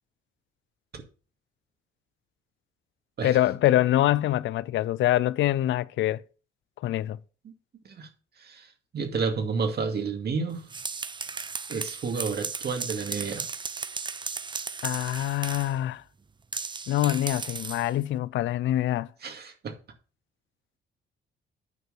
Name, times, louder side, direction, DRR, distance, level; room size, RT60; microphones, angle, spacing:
voice 1, 3.2-6.2 6.8-7.2 14.8-16.0 16.9-19.1, left 14 dB, 70° left, 0.5 m, -25 dB
voice 2, 8.9-10.6 11.7-13.5 19.2-19.7, right 5 dB, 55° right, 2.3 m, -30 dB
sound 1, 10.5-15.8 16.5-17.9, right 4 dB, 25° right, 0.6 m, -35 dB
9.4 x 4.7 x 6.2 m
cardioid pair, 90°, 20 cm